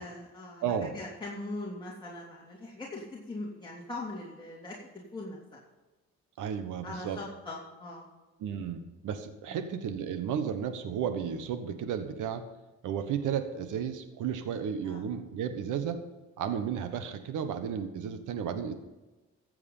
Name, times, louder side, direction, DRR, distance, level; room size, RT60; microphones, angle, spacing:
voice 1, 0.0-0.6 0.9-4.7 5.1-5.4 6.8-8.1 9.5-9.6 14.8-15.1, left 2 dB, 15° left, -6 dB, 3.2 m, -40 dB
voice 2, 0.6-0.9 6.4-7.2 8.4-12.4 12.8-16.0 16.4-18.7, right 8 dB, 85° right, 9 dB, 1.3 m, -33 dB
14.5 x 7.8 x 5.6 m, 1.1 s
cardioid pair, 90°, 30 cm